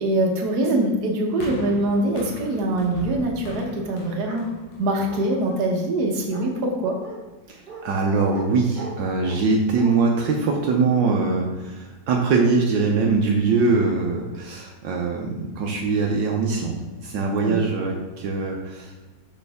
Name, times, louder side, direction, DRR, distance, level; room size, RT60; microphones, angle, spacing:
voice 1, 0.0-4.5 4.8-7.0 17.4-17.6, right 1 dB, 60° right, 1 dB, 1.6 m, -23 dB
sound 1, 1.4-5.8 6.5-6.6, left 3 dB, 80° left, 1.8 m, -39 dB
Bark, 4.2-4.5 5.1-5.6 6.3-6.5 7.0-7.2 7.7-7.8 8.3-8.5 8.8-9.4 9.8-9.9, right 4 dB, 35° right, 1.0 m, -38 dB
voice 2, 7.5-18.9, right 4 dB, 80° right, 0 dB, 1.4 m, -22 dB
6.5 x 5.6 x 3.5 m, 1.2 s
omnidirectional pair, 2.0 m